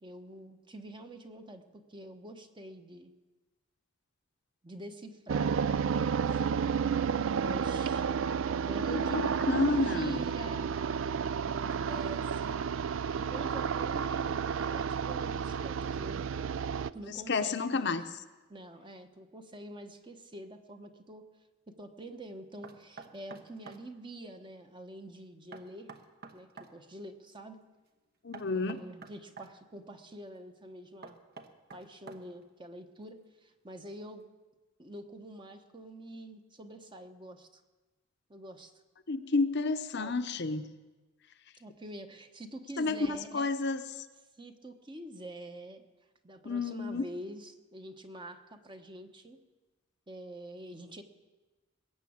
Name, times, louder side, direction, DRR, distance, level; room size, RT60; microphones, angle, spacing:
voice 1, 0.0-3.1 4.6-5.7 6.2-6.8 7.4-8.1 8.6-10.7 11.5-16.2 16.9-17.9 18.5-21.3 21.7-25.9 26.3-27.6 28.4-31.2 31.7-34.2 34.8-37.6 38.3-38.7 40.0-40.1 41.6-43.5 44.4-45.8 46.2-49.4 50.1-51.0, right 1 dB, 25° right, 6 dB, 1.0 m, -46 dB
sound 1, 5.3-16.9, right 6 dB, 70° right, 0.4 m, -31 dB
voice 2, 8.9-10.2 17.3-18.0 28.2-28.8 39.1-40.6 42.8-44.1 46.4-47.0, left 3 dB, 55° left, 8 dB, 0.7 m, -30 dB
Knock, 22.6-23.8 25.5-26.7 28.3-29.5 31.0-32.5, right 4 dB, 50° right, 1.1 m, -48 dB
21.0 x 7.0 x 8.6 m, 1.2 s
head